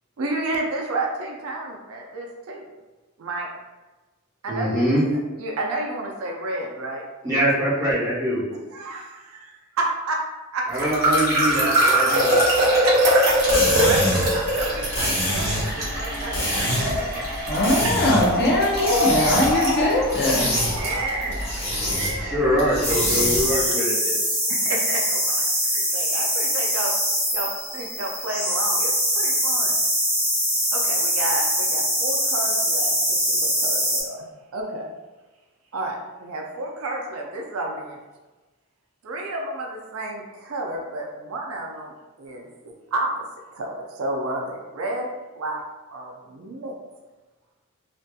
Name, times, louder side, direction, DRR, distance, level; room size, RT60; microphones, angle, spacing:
voice 1, 0.2-2.7 3.2-3.5 4.4-4.8 5.4-7.0 8.7-10.2 10.5-11.0 12.8-13.4 13.7-17.3 17.8-18.0 19.0-19.5 20.8-22.4 23.3-23.7 24.5-25.4 25.7-26.9 27.3-29.8 30.7-34.3 34.5-34.9 35.7-38.0 39.0-43.2 43.5-45.1 45.3-45.6 45.9-46.7, right 2 dB, 75° right, 0 dB, 0.4 m, -31 dB
voice 2, 4.5-5.0 7.2-8.4 10.7-12.3 21.9-24.3, equal, 15° right, -11 dB, 1.0 m, -23 dB
sound 1, 10.7-21.5, equal, 50° right, 0.9 m, -22 dB
sound 2, 13.3-23.6, equal, 30° left, 1.1 m, -27 dB
voice 3, 17.5-20.6, left 1 dB, 50° left, -2 dB, 0.5 m, -21 dB
sound 3, 22.8-34.0, equal, 5° left, 0.8 m, -23 dB
2.6 x 2.5 x 2.2 m, 1.2 s
head